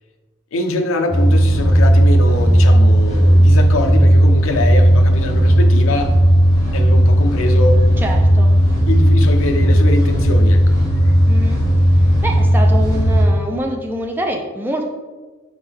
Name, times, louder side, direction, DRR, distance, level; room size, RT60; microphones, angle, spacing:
voice 1, 0.5-6.1 6.7-7.9 8.9-10.8, left 2 dB, 70° left, 6 dB, 0.5 m, -23 dB
sound 1, 1.1-13.2, equal, 15° left, 1.1 m, -13 dB
voice 2, 8.0-8.5 11.3-14.9, right 1 dB, 10° right, 2 dB, 0.4 m, -25 dB
4.2 x 3.5 x 3.4 m, 1.3 s
head